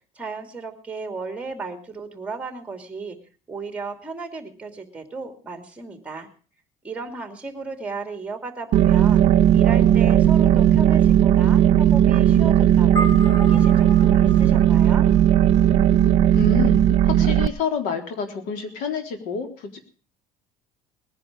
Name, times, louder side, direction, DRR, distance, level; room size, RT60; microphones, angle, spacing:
voice 1, 0.1-3.2 3.5-6.3 6.8-9.2 9.5-13.1 13.3-15.1, right 4 dB, 10° right, 7 dB, 2.7 m, -35 dB
sound 1, 8.7-17.5, right 10 dB, 50° right, 0.6 m, -16 dB
sound 2, 13.0-17.5, right 1 dB, 20° left, 3.6 m, -35 dB
voice 2, 16.3-16.8 17.0-19.9, left 7 dB, 75° left, 6 dB, 3.8 m, -28 dB
20.5 x 10.5 x 5.0 m, 0.40 s
cardioid pair, 155°, 14 cm